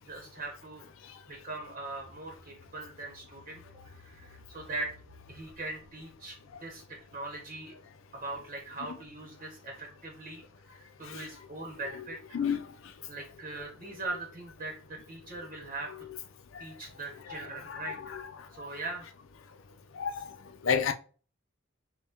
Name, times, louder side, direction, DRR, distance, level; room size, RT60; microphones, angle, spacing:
voice 1, 0.0-0.9 1.3-4.9 5.3-7.7 8.1-10.4 10.7-12.2 13.1-16.1 16.6-18.0 18.5-19.1, right 2 dB, 35° right, 0.9 m, -41 dB
sound 1, 1.9-7.6 8.0-8.1, left 3 dB, 10° right, 0.8 m, -59 dB
voice 2, 17.6-18.2 20.0-20.3 20.6-20.9, left 6 dB, 90° left, 0.5 m, -31 dB
5.4 x 2.2 x 2.8 m
head